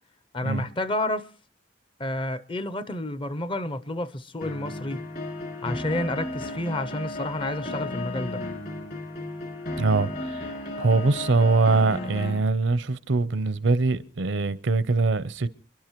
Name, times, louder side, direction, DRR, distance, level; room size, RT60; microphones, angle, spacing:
voice 1, 0.3-1.3 2.0-5.0 5.6-8.4, left 1 dB, 30° left, 0.6 m, -30 dB
sound 1, 4.4-12.4, left 2 dB, 55° left, 2.6 m, -34 dB
voice 2, 9.8-10.5 10.8-15.5, right 3 dB, 80° right, 0.7 m, -23 dB
29.0 x 11.0 x 3.0 m
head